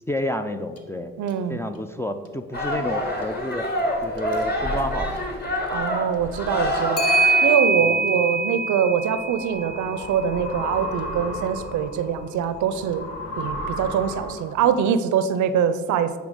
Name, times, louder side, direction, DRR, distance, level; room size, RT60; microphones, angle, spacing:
voice 1, 0.1-1.1 1.5-3.7 4.0-5.3 7.9-8.1, left 1 dB, 10° left, 5 dB, 0.4 m, -30 dB
Clock, 0.8-0.9 1.3-1.4 4.2-4.4 7.0-11.2, right 3 dB, 50° left, 1.0 m, -24 dB
voice 2, 1.2-1.6 5.7-7.1 7.4-13.1 13.4-16.1, right 8 dB, 70° right, 12 dB, 0.5 m, -23 dB
sound 1, 2.5-7.6, equal, 30° left, 1.7 m, -26 dB
sound 2, 8.9-14.7, left 1 dB, 80° left, 1.2 m, -34 dB
8.1 x 3.4 x 5.0 m, 1.5 s
supercardioid pair, 70°, 31 cm